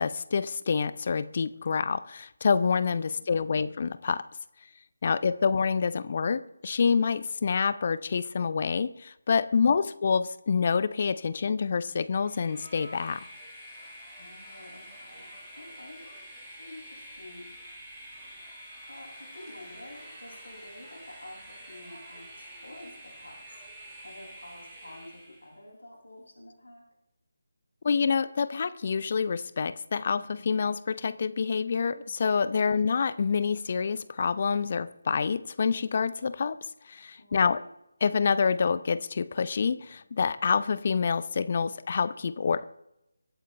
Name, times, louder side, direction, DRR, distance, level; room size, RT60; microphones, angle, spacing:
voice 1, 0.0-4.2 5.0-13.2 27.8-36.6 36.9-37.6 38.0-42.6, left 5 dB, 35° left, 15 dB, 0.6 m, -27 dB
voice 2, 9.5-9.9 14.1-16.0 16.6-17.5 18.9-26.8 32.6-32.9 37.2-37.7, left 1 dB, 75° left, -1 dB, 6.6 m, -49 dB
Train, 12.1-25.6, equal, 10° right, 4.6 m, -47 dB
23.5 x 11.5 x 3.3 m, 0.84 s
figure-of-eight pair, 155°, 0 cm